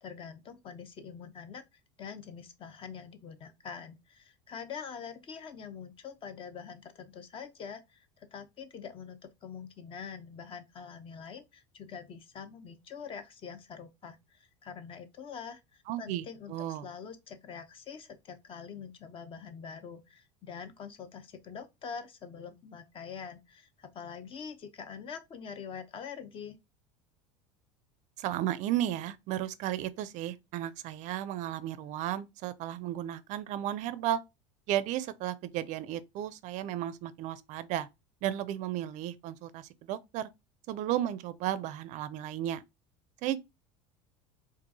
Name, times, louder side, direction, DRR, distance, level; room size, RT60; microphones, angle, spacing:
voice 1, 0.0-26.6, left 6 dB, 35° left, 0.7 m, -45 dB
voice 2, 15.9-16.8 28.2-34.2 34.7-37.9 38.2-40.3 40.7-42.6 43.2-43.4, right 12 dB, 55° right, 0.4 m, -34 dB
4.4 x 2.4 x 2.7 m
supercardioid pair, 110°, 15 cm